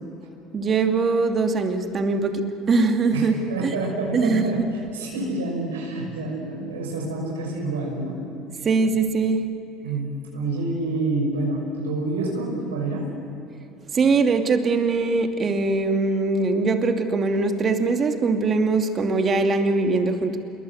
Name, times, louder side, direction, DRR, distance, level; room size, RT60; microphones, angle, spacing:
voice 1, 0.5-3.7 4.1-4.7 8.6-9.5 13.9-20.4, right 3 dB, 40° right, 5 dB, 2.6 m, -22 dB
voice 2, 3.1-4.6 4.9-8.2 9.8-13.1, right 2 dB, 85° right, -1 dB, 5.9 m, -28 dB
27.5 x 23.0 x 7.9 m, 3.0 s
hypercardioid pair, 70°, 0 cm